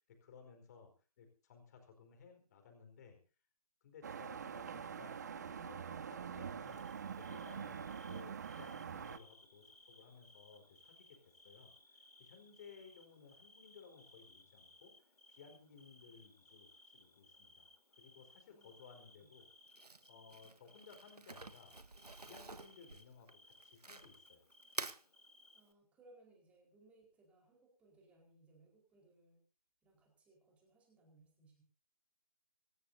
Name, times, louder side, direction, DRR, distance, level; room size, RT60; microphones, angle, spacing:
voice 1, 0.1-3.2 3.8-6.9 7.2-11.7 12.2-14.9 15.3-19.5 20.1-21.7 22.2-24.5, left 5 dB, 25° left, 4 dB, 4.7 m, -59 dB
sound 1, 4.0-9.2, right 7 dB, 30° right, 0.8 m, -45 dB
Bird / Cricket, 6.7-25.7, left 2 dB, 75° left, 3.3 m, -64 dB
voice 2, 18.5-18.8 19.1-19.3 25.5-29.4 29.8-31.6, right 2 dB, 5° right, 0 dB, 4.6 m, -66 dB
Crumpling crinkling, 19.7-24.3 24.6-25.0, right 3 dB, 85° right, 1.5 m, -48 dB
25.5 x 13.5 x 2.8 m, 0.34 s
figure-of-eight pair, 155°, 20 cm